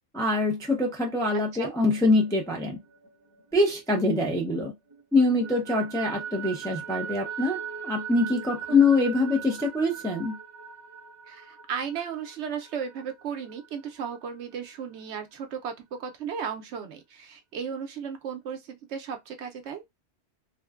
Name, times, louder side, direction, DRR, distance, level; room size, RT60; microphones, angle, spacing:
voice 1, 0.1-2.8 3.5-4.7 5.1-10.4, left 2 dB, 5° left, 0.3 m, -24 dB
sound 1, 1.7-4.6 4.9-14.3, right 8 dB, 25° right, 0.8 m, -41 dB
voice 2, 11.3-19.8, right 7 dB, 70° right, 0.9 m, -35 dB
3.1 x 2.1 x 2.3 m
omnidirectional pair, 1.3 m